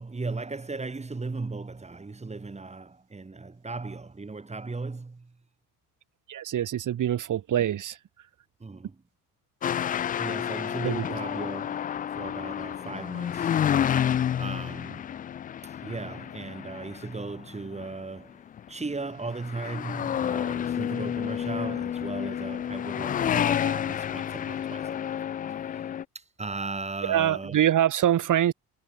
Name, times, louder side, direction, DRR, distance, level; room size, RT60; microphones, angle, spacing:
voice 1, 0.0-5.3 8.6-8.9 10.2-13.5 14.4-15.1 15.6-18.4 18.7-25.1 26.1-27.6, right 3 dB, 15° right, 1.4 m, -37 dB
voice 2, 6.3-8.0 10.8-11.1 27.0-28.5, right 11 dB, 40° right, 1.4 m, -24 dB
sound 1, 9.6-17.9 18.6-18.9 19.2-26.0, left 9 dB, 20° left, 0.3 m, -30 dB
hypercardioid pair, 55°, 46 cm